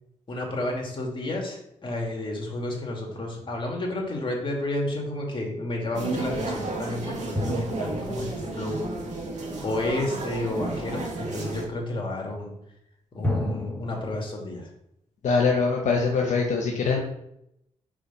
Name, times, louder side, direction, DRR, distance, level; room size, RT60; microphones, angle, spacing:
voice 1, 0.3-8.8 9.6-12.5 13.1-14.7, left 1 dB, 40° left, 0 dB, 2.2 m, -31 dB
sound 1, 3.1-4.5 7.3-9.9 13.2-14.2, left 1 dB, 15° left, 1.5 m, -33 dB
sound 2, 5.9-11.7, right 2 dB, 70° right, 1.7 m, -32 dB
voice 2, 15.2-17.0, left 4 dB, 75° left, 0 dB, 1.0 m, -23 dB
5.0 x 4.6 x 5.4 m, 0.79 s
cardioid pair, 70°, 13 cm